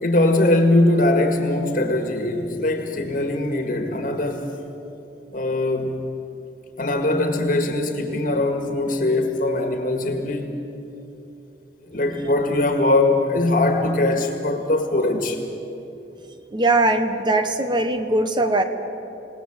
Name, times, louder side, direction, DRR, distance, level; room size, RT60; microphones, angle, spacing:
voice 1, 0.0-4.6 5.3-6.0 6.8-10.5 11.8-15.4, left 2 dB, 50° left, 1.9 m, -21 dB
voice 2, 16.5-18.6, right 2 dB, 25° right, 1.2 m, -20 dB
28.0 x 18.5 x 7.5 m
head